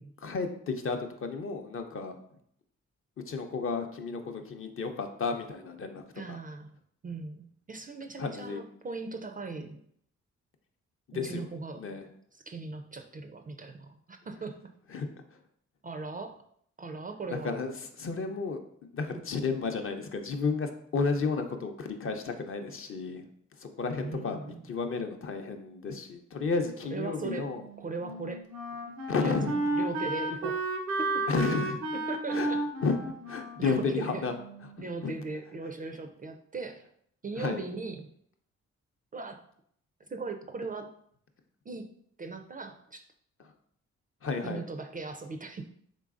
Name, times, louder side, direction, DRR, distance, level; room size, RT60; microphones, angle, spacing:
voice 1, 0.2-2.2 3.3-6.0 8.2-8.6 11.1-11.4 11.8-12.0 14.9-15.1 17.3-17.7 18.0-18.6 18.9-23.3 23.6-27.6 29.1-29.5 31.3-31.8 32.3-32.5 32.8-33.0 33.3-34.3 35.0-35.1 37.4-37.6 44.2-44.6, left 4 dB, 45° left, 5 dB, 0.6 m, -32 dB
voice 2, 6.1-6.7 7.0-9.8 11.1-12.0 12.3-14.6 15.8-16.4 16.8-17.6 19.1-19.2 24.0-24.6 26.8-27.5 27.8-28.5 29.1-29.4 29.7-30.6 31.0-31.3 31.9-32.6 33.6-34.2 34.8-36.9 37.2-38.1 39.1-39.4 40.1-40.9 41.7-41.9 42.2-43.0 44.4-45.7, right 3 dB, 25° right, 5 dB, 0.4 m, -39 dB
Wind instrument woodwind instrument, 27.5-34.8, right 2 dB, 85° right, 0.6 m, -33 dB
3.8 x 3.2 x 2.5 m, 0.67 s
supercardioid pair, 50°, 32 cm